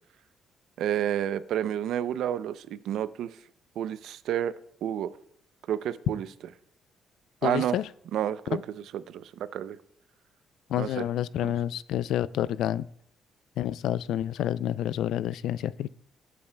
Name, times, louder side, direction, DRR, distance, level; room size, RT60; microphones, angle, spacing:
voice 1, 0.8-3.3 3.8-4.5 4.8-5.1 5.7-6.3 7.4-7.8 8.1-9.8 10.8-11.1 11.4-11.5, right 10 dB, 70° right, 14 dB, 0.5 m, -30 dB
voice 2, 7.4-7.8 8.5-8.6 10.7-12.9 13.6-15.9, left 11 dB, 75° left, 18 dB, 0.3 m, -29 dB
20.5 x 8.5 x 2.2 m, 0.70 s
cardioid pair, 150°, 0 cm